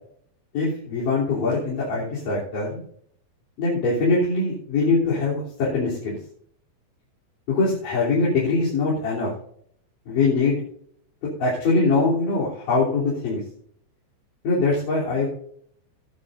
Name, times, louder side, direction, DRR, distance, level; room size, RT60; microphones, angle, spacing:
voice 1, 0.5-2.8 3.6-6.2 7.5-9.3 10.1-10.6 11.4-13.4 14.4-15.3, left 3 dB, 50° left, -7 dB, 4.7 m, -22 dB
18.0 x 10.5 x 2.6 m, 0.64 s
omnidirectional pair, 5.2 m